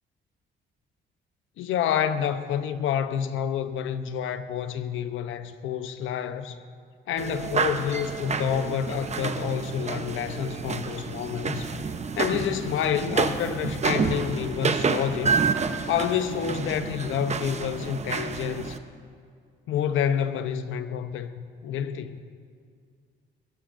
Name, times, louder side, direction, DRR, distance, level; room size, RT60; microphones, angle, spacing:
voice 1, 1.6-6.6 7.1-11.7 12.2-15.4 15.9-18.8 19.7-22.2, left 8 dB, 80° left, 0.8 m, -28 dB
sound 1, 7.2-18.8, right 5 dB, 35° right, 0.9 m, -29 dB
21.5 x 18.5 x 2.6 m
cardioid pair, 90°, 20 cm